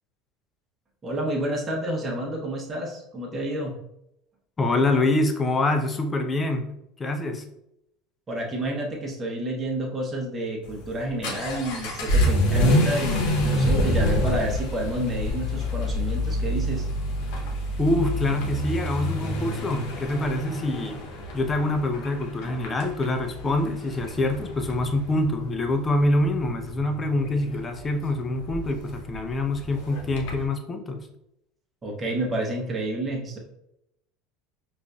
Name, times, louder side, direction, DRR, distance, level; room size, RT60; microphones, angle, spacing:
voice 1, 1.0-3.8 8.3-16.9 31.8-33.4, right 1 dB, 25° right, -1 dB, 1.0 m, -29 dB
voice 2, 4.6-6.7 7.0-7.4 17.8-21.0 21.3-31.0, left 2 dB, 25° left, 5 dB, 0.6 m, -25 dB
Vehicle / Accelerating revving vroom, 10.6-30.4, equal, 70° left, 0.9 m, -27 dB
5.0 x 2.5 x 2.3 m, 0.82 s
hypercardioid pair, 90°, 0 cm